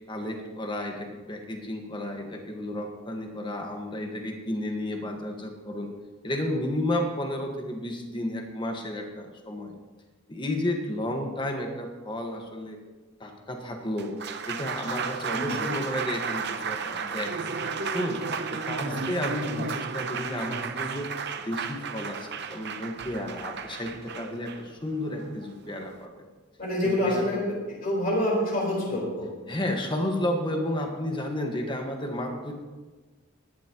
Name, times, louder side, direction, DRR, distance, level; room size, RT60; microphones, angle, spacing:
voice 1, 0.1-5.9 6.2-9.7 10.3-12.8 13.2-14.1 14.4-17.4 17.9-18.2 18.5-21.1 21.4-26.3 26.8-27.3 29.5-32.5, left 1 dB, 25° left, 3 dB, 1.6 m, -32 dB
Applause, 13.8-26.1, right 5 dB, 50° right, 0.8 m, -33 dB
voice 2, 15.3-15.6 18.8-19.0 19.4-19.7 26.6-29.3, left 1 dB, 40° left, -3 dB, 4.3 m, -27 dB
18.0 x 11.5 x 3.1 m, 1.3 s
head